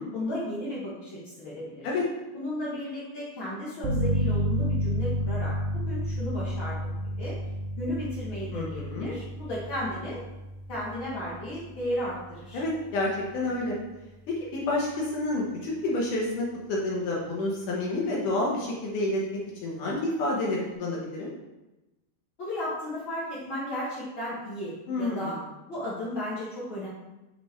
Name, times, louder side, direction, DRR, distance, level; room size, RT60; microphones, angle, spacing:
voice 1, 0.1-1.9 2.3-7.4 7.8-10.2 10.7-12.6 22.4-25.4 25.7-26.9, left 1 dB, 85° left, -7 dB, 1.1 m, -34 dB
sound 1, 3.8-14.4, equal, 60° right, 2.5 m, -32 dB
voice 2, 8.5-9.1 12.5-13.8 14.3-21.3 24.9-25.4, left 2 dB, 70° left, -3 dB, 2.0 m, -29 dB
7.1 x 5.9 x 4.4 m, 1.0 s
omnidirectional pair, 5.1 m